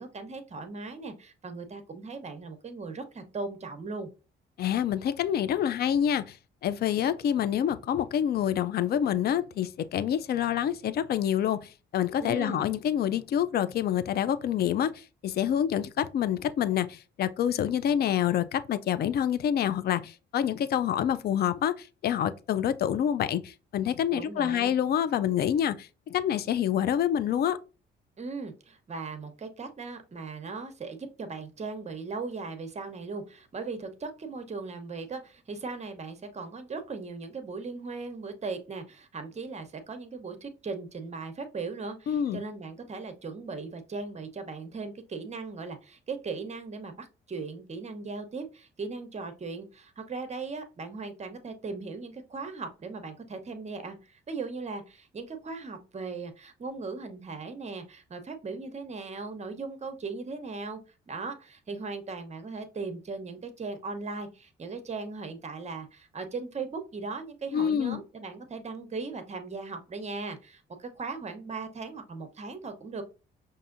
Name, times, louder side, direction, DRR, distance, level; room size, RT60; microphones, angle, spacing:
voice 1, 0.0-4.1 12.2-12.6 24.1-24.7 28.2-60.8 61.1-73.0, right 4 dB, 35° right, 0.8 m, -38 dB
voice 2, 4.6-6.4 6.6-27.6 42.1-42.4 67.5-68.0, left 10 dB, 55° left, 0.4 m, -27 dB
5.4 x 2.6 x 2.5 m
cardioid pair, 90°, 20 cm